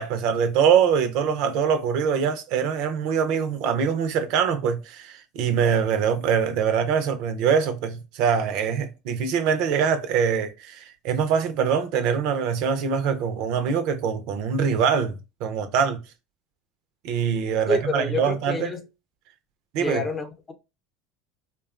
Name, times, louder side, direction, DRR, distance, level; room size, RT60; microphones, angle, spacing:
voice 1, 0.0-15.2 15.4-16.0 17.0-18.7 19.7-20.0, right 7 dB, 65° right, 0.5 m, -23 dB
voice 2, 17.7-18.8 19.7-20.5, left 2 dB, 25° left, 0.7 m, -28 dB
2.7 x 2.3 x 2.4 m
supercardioid pair, 95°, 0 cm